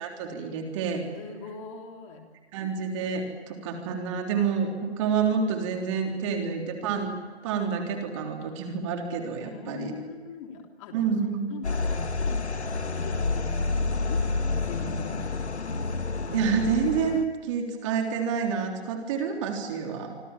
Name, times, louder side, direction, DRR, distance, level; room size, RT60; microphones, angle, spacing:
voice 1, 0.0-1.0 2.5-7.2 7.4-9.9 10.9-11.5 16.3-20.1, right 6 dB, 30° right, 3 dB, 3.5 m, -28 dB
voice 2, 1.1-2.2 6.4-6.6 9.4-15.8, left 5 dB, 30° left, 3 dB, 3.5 m, -42 dB
sound 1, 11.6-17.2, left 3 dB, 80° left, 1.8 m, -29 dB
27.5 x 26.0 x 7.4 m, 1.5 s
figure-of-eight pair, 140°, 33 cm